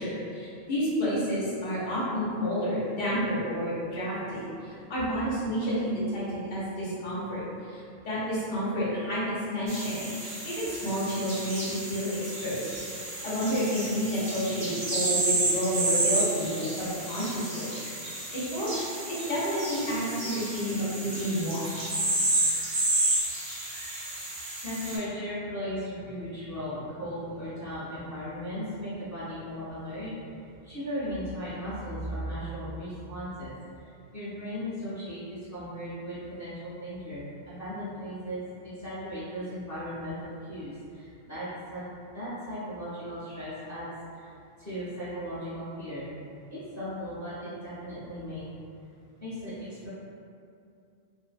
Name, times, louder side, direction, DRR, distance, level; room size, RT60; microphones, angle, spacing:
voice 1, 0.0-17.7 18.0-18.7 19.1-21.9, equal, 65° left, -10 dB, 0.9 m, -30 dB
sound 1, 9.7-25.0, right 2 dB, 40° right, 0.5 m, -31 dB
voice 2, 24.6-30.1 30.6-33.5 34.1-41.8 42.1-43.9 44.1-44.3 44.6-46.1 46.5-48.4 49.2-49.9, equal, 20° left, -12 dB, 0.7 m, -37 dB
2.5 x 2.0 x 2.4 m, 2.4 s
omnidirectional pair, 1.1 m